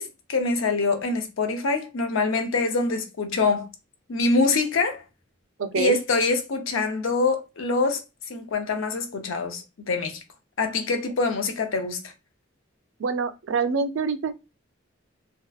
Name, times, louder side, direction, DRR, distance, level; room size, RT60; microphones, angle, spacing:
voice 1, 0.0-3.7 4.1-5.0 5.7-10.2 10.6-12.1, left 3 dB, 85° left, 0.6 m, -25 dB
voice 2, 5.6-6.0 13.0-14.3, right 5 dB, 75° right, 0.4 m, -25 dB
2.7 x 2.1 x 2.3 m
head